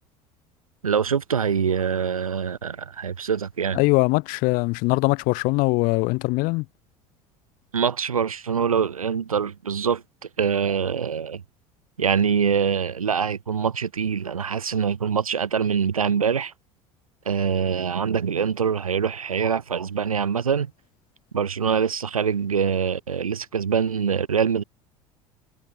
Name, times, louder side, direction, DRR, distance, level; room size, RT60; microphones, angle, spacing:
voice 1, 0.8-3.8 7.7-10.0 10.4-11.4 12.0-16.5 17.3-20.7 21.3-24.6, right 7 dB, 80° right, 2.5 m, -24 dB
voice 2, 3.7-6.7, left 26 dB, 50° left, 0.7 m, -21 dB
figure-of-eight pair, 65°, 18 cm